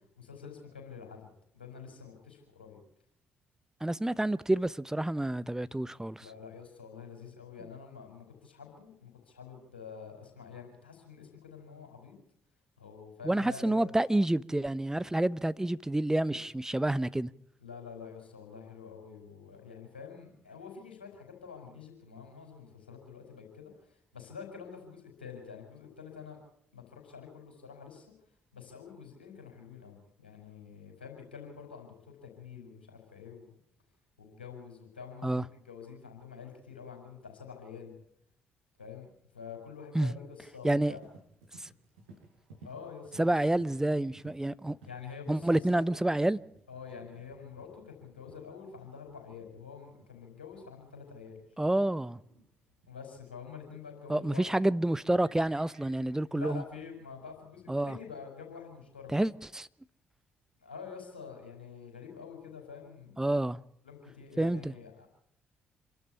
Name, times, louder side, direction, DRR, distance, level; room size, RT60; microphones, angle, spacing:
voice 1, 0.2-1.3 1.5-2.8 6.2-12.1 12.8-13.9 16.3-16.4 17.6-26.4 26.7-28.1 28.5-33.5 34.2-37.9 38.8-41.0 42.6-43.3 44.8-45.9 46.7-51.4 52.9-54.4 56.3-59.2 60.6-63.2 63.8-65.1, left 6 dB, 85° left, 5.0 m, -47 dB
voice 2, 3.8-6.2 13.2-17.3 35.2-35.4 39.9-40.1 40.6-40.9 41.6-41.7 43.2-44.8 45.3-46.4 51.6-52.2 54.1-56.6 57.7-58.0 59.1-59.7 63.2-63.6 64.4-64.7, right 1 dB, 10° right, 0.9 m, -28 dB
Livestock farm animals working animals, 40.9-59.4, right 2 dB, 75° right, 5.5 m, -60 dB
27.0 x 12.5 x 8.4 m
figure-of-eight pair, 45°, 5 cm